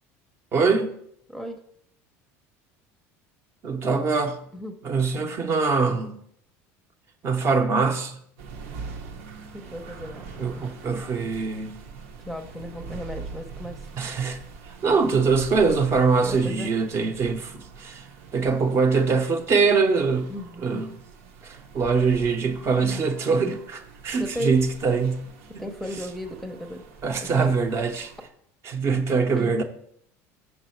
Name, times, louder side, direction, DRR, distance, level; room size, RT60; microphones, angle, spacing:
voice 1, 0.5-0.9 3.6-4.4 4.8-6.2 7.2-8.2 10.4-11.8 14.0-14.4 14.7-18.1 18.3-20.3 20.6-20.9 21.4-25.3 25.5-25.6 27.0-28.1 28.6-29.6, right 4 dB, 40° right, 0.8 m, -23 dB
voice 2, 1.3-1.6 3.8-4.0 4.5-4.8 9.5-10.7 12.3-13.8 16.2-16.7 20.3-20.9 22.8-23.0 24.2-24.6 25.6-26.8 27.2-27.5 29.4-29.5, left 1 dB, 5° left, 0.6 m, -35 dB
sound 1, 8.4-28.3, right 5 dB, 90° right, 0.9 m, -43 dB
5.9 x 5.5 x 4.4 m
supercardioid pair, 120°, 7 cm